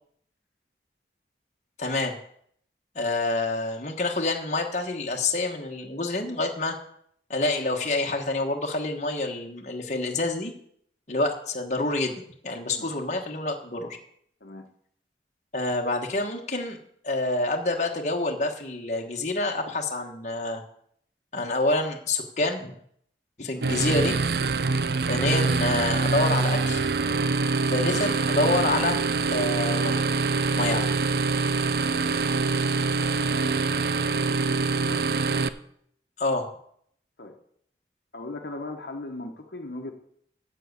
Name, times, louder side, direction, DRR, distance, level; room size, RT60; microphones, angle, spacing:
voice 1, 1.8-2.1 2.9-6.7 7.3-10.5 11.1-14.0 15.5-16.8 17.0-20.6 21.3-22.7 23.4-24.1 25.1-26.8 27.7-29.0 29.3-30.0 30.5-30.9 36.2-36.5, left 2 dB, 40° left, 2 dB, 1.3 m, -27 dB
sound 1, 23.6-35.5, right 4 dB, 60° right, 0.5 m, -25 dB
voice 2, 34.2-35.1 37.2-37.4 38.1-39.9, left 2 dB, 70° left, 3 dB, 1.1 m, -39 dB
7.7 x 7.6 x 8.1 m, 0.67 s
head